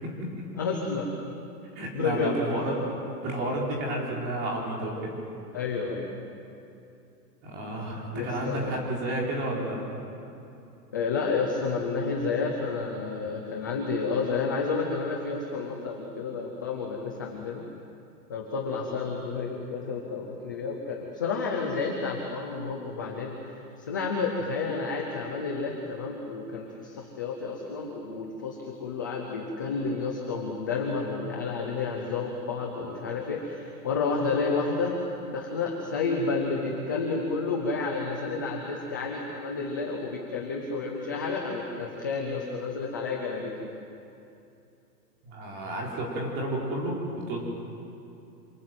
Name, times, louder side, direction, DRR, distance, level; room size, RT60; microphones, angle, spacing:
voice 1, 0.0-0.5 1.7-2.9 3.2-5.2 7.4-9.9 45.2-47.4, right 1 dB, 20° right, -2 dB, 4.5 m, -31 dB
voice 2, 0.6-1.1 1.9-2.6 5.5-6.1 8.1-8.8 10.9-17.6 18.3-23.3 23.9-35.0 35.3-43.7, left 4 dB, 15° left, 0 dB, 0.6 m, -30 dB
27.5 x 26.5 x 7.9 m, 2.7 s
hypercardioid pair, 180°, 50 cm